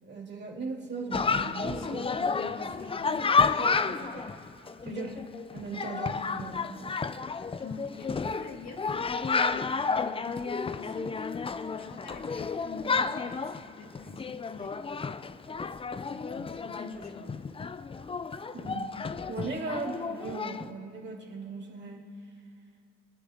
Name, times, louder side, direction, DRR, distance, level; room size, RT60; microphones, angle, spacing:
voice 1, 0.0-2.0 3.6-4.3 4.8-5.1 5.5-6.9 18.5-19.0 19.3-22.1, right 3 dB, 35° right, 0 dB, 2.4 m, -38 dB
Chatter, 1.1-20.7, left 5 dB, 20° left, 0.3 m, -31 dB
voice 2, 1.7-3.6 4.8-5.2 7.6-14.8 16.1-17.7, left 3 dB, 65° left, 1 dB, 1.7 m, -46 dB
28.5 x 9.8 x 3.5 m, 2.4 s
cardioid pair, 100°, 29 cm